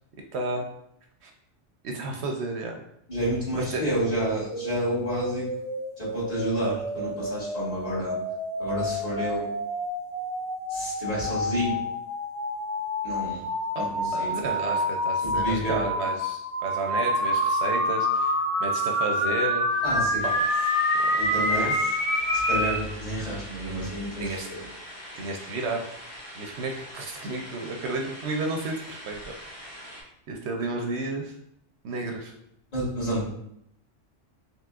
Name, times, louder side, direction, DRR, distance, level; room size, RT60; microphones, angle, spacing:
voice 1, 0.3-0.6 1.2-1.3 1.8-2.8 3.6-3.8 13.7-19.8 20.2-20.4 21.5-21.7 24.2-24.5 25.2-25.9 26.3-29.2 30.3-31.3 31.8-32.3, right 2 dB, 70° right, 2 dB, 0.8 m, -32 dB
voice 2, 3.1-5.5 6.0-8.2 8.6-9.5 10.7-11.8 13.0-13.4 13.8-14.5 15.2-15.8 19.8-20.3 21.2-21.9 22.3-24.6 32.7-33.2, right 1 dB, 30° left, -8 dB, 1.6 m, -30 dB
sound 1, 3.9-22.8, left 1 dB, 50° left, 1.2 m, -28 dB
sound 2, 20.2-30.0, equal, 85° left, 1.9 m, -43 dB
4.7 x 3.3 x 2.4 m, 0.76 s
omnidirectional pair, 1.2 m